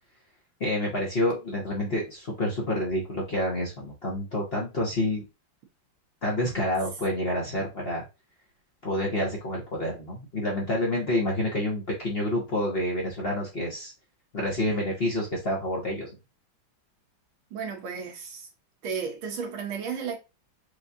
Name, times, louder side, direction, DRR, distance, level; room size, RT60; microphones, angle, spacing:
voice 1, 0.6-5.2 6.2-8.0 8.8-13.9 14.3-16.1, left 1 dB, 40° left, 1.0 m, -28 dB
voice 2, 17.5-18.5 18.8-20.2, right 6 dB, 80° right, 1.9 m, -33 dB
4.7 x 2.7 x 2.6 m
omnidirectional pair, 2.2 m